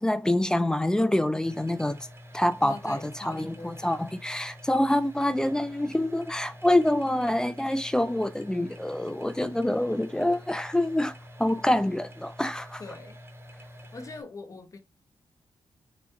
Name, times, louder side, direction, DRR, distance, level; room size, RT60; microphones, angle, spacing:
voice 1, 0.0-2.0 2.3-12.8, left 1 dB, 10° left, 0.4 m, -26 dB
sound 1, 1.4-14.2, equal, 30° right, 1.0 m, -47 dB
voice 2, 2.6-4.0 12.8-13.2 13.9-14.8, left 3 dB, 40° left, 1.0 m, -42 dB
4.0 x 2.3 x 4.4 m
cardioid pair, 90°, 9 cm